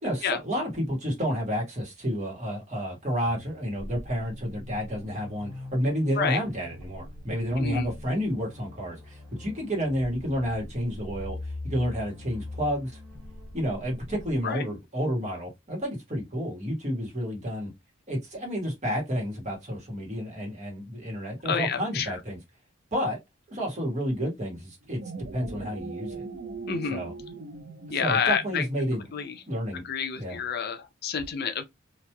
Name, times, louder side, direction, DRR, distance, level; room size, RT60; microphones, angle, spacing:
voice 1, 0.0-11.4 11.6-13.0 13.5-17.7 18.1-22.4 22.9-23.2 23.5-25.0 25.3-26.2 26.9-27.1 28.0-29.0 29.5-29.8 30.2-30.4, equal, 35° right, 1.4 m, -30 dB
epic ambient track, 3.2-14.4, left 2 dB, ahead, 1.7 m, -42 dB
voice 2, 7.6-7.9 14.4-14.6 21.4-22.2 26.7-27.0 27.9-28.7 29.1-29.4 29.7-31.6, left 7 dB, 55° left, 0.5 m, -29 dB
sound 1, 24.8-29.4, right 3 dB, 55° right, 0.5 m, -40 dB
2.9 x 2.6 x 2.2 m
head